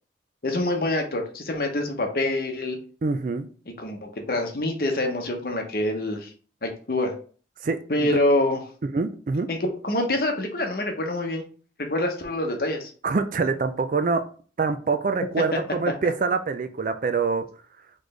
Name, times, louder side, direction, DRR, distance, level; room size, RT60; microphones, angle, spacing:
voice 1, 0.4-2.8 3.7-6.3 6.6-7.1 7.9-8.6 9.5-11.5 11.8-12.9, left 1 dB, 50° left, 3 dB, 0.8 m, -26 dB
voice 2, 3.0-3.5 7.6-8.2 8.9-9.5 13.0-14.2 14.6-17.4, right 4 dB, 45° right, 9 dB, 0.4 m, -25 dB
4.2 x 3.2 x 3.2 m, 0.41 s
head